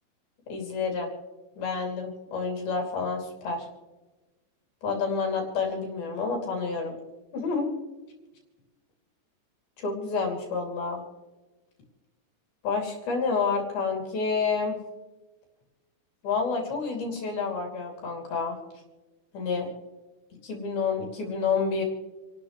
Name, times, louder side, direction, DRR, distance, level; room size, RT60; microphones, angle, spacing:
voice 1, 0.5-1.1 1.6-3.7 4.8-6.9 7.3-7.7 9.8-11.0 12.6-14.8 16.2-18.6 19.3-19.7 20.4-21.8, left 4 dB, 60° left, 0 dB, 4.6 m, -29 dB
29.0 x 12.5 x 3.2 m, 1.2 s
omnidirectional pair, 5.2 m